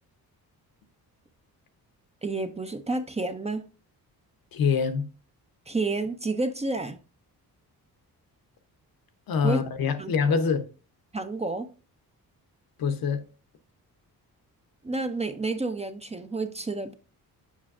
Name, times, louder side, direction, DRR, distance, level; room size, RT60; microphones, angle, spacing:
voice 1, 2.2-3.6 5.7-7.0 9.4-9.6 10.0-10.4 11.1-11.7 14.8-16.9, right 3 dB, 15° right, 0.5 m, -30 dB
voice 2, 4.5-5.1 9.3-10.6 12.8-13.2, left 6 dB, 65° left, 0.8 m, -25 dB
7.3 x 5.6 x 2.4 m
cardioid pair, 100°, 38 cm